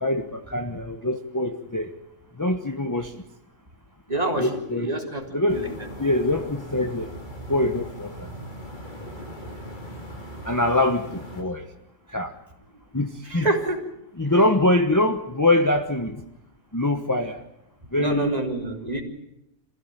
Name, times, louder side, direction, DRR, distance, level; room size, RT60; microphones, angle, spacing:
voice 1, 0.0-1.9 2.4-3.1 4.4-4.9 5.3-5.6 6.0-7.1 7.5-8.3 10.4-11.6 12.1-12.3 12.9-13.5 14.2-16.2 16.7-17.4 17.9-18.4, left 1 dB, 15° left, 5 dB, 1.1 m, -23 dB
voice 2, 4.1-5.7 13.3-13.8 18.0-19.0, right 2 dB, 30° right, 1 dB, 3.8 m, -27 dB
sound 1, 5.5-11.4, equal, 35° left, 3.6 m, -39 dB
27.0 x 16.0 x 9.2 m, 0.86 s
omnidirectional pair, 1.3 m